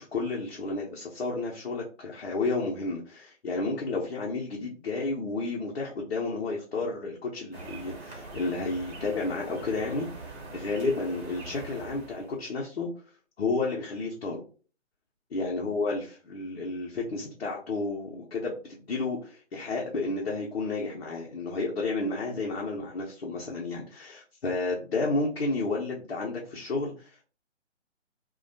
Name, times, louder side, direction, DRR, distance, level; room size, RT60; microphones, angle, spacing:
voice 1, 0.0-12.9 13.4-14.4 15.3-27.2, left 3 dB, 60° left, -2 dB, 0.6 m, -31 dB
sound 1, 7.5-12.4, right 2 dB, 60° right, 1.0 m, -43 dB
2.2 x 2.1 x 2.6 m, 0.38 s
figure-of-eight pair, 140°, 36 cm